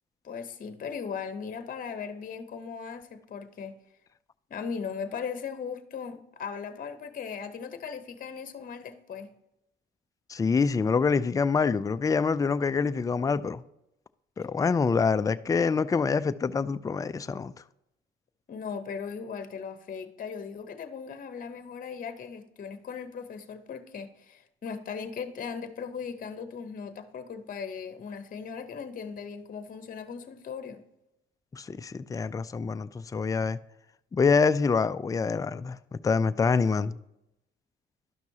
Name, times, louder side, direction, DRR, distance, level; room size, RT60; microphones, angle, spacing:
voice 1, 0.2-3.7 4.5-9.3 18.5-30.8, left 6 dB, 45° left, 0.8 m, -38 dB
voice 2, 10.3-13.6 14.4-17.5 31.5-33.6 34.1-37.0, left 5 dB, 15° left, 0.3 m, -26 dB
11.5 x 6.0 x 2.8 m
cardioid pair, 90°, 20 cm